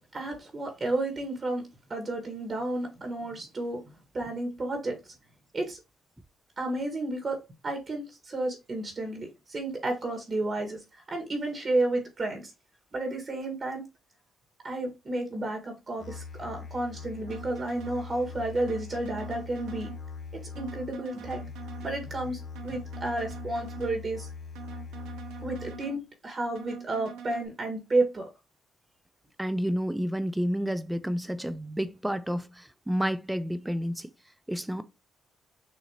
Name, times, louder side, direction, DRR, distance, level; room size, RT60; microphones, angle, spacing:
voice 1, 0.1-3.8 4.1-5.1 5.5-5.8 6.6-7.4 7.6-10.8 11.1-12.5 12.9-13.8 14.6-19.9 20.3-21.4 21.8-24.3 25.4-28.3, right 2 dB, 40° right, 1.6 m, -31 dB
Musical instrument, 16.0-26.0, left 5 dB, 40° left, 1.1 m, -42 dB
sound 1, 17.3-18.0 18.5-20.0 20.5-22.0 22.5-24.0 24.5-26.0 26.5-27.5, right 8 dB, 90° right, 0.8 m, -44 dB
voice 2, 29.4-34.1 34.5-34.8, equal, 5° right, 0.4 m, -30 dB
6.5 x 2.8 x 2.8 m
cardioid pair, 90°, 0 cm